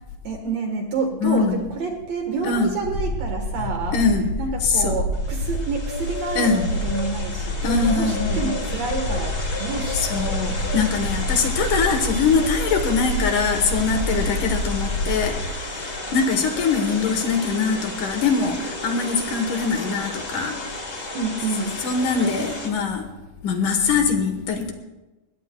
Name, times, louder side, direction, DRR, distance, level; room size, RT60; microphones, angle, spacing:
voice 1, 0.2-10.3 21.1-21.8, right 4 dB, 60° right, 3 dB, 2.1 m, -29 dB
voice 2, 1.2-1.6 2.4-2.7 3.6-4.3 4.6-5.0 6.4-6.6 7.6-8.4 9.9-20.6 21.5-23.1 23.4-24.7, left 5 dB, 65° left, 5 dB, 2.6 m, -23 dB
sound 1, 2.8-15.5, equal, 45° left, 2.4 m, -28 dB
sound 2, 5.1-22.7, left 2 dB, 25° left, 1.7 m, -33 dB
21.0 x 17.5 x 2.2 m, 1.1 s
omnidirectional pair, 4.2 m